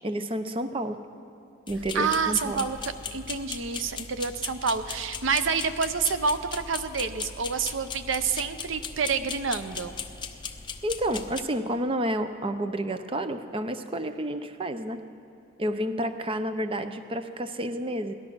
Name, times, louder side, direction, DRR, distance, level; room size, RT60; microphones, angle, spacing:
voice 1, 0.0-1.0 1.7-2.6 10.8-15.0 15.6-18.1, right 1 dB, 25° right, 9 dB, 0.6 m, -30 dB
sound 1, 1.7-11.4, left 6 dB, 25° left, 0.7 m, -38 dB
voice 2, 1.9-9.9, right 5 dB, 70° right, 11 dB, 0.6 m, -28 dB
18.0 x 12.5 x 6.2 m, 2.8 s
head